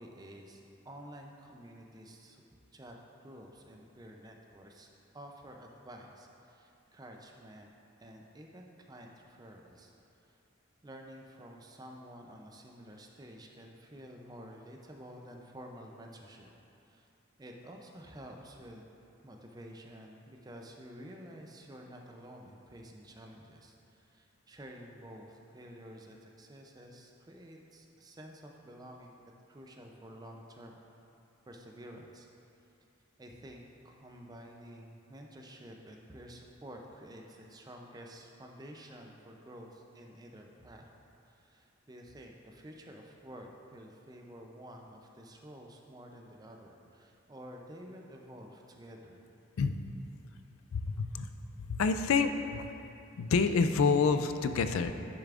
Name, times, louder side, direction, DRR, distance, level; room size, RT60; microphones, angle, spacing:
voice 1, 0.0-2.4 2.7-4.9 5.1-7.7 8.0-9.9 10.2-10.4 10.8-16.5 16.8-17.1 17.4-18.9 19.2-29.2 29.5-30.8 31.5-32.3 33.2-40.9 41.2-49.3, equal, 20° right, 1 dB, 0.4 m, -50 dB
voice 2, 50.7-51.3 51.7-52.7 53.2-54.9, left 5 dB, 75° left, 9 dB, 0.4 m, -28 dB
10.0 x 6.7 x 2.4 m, 2.7 s
head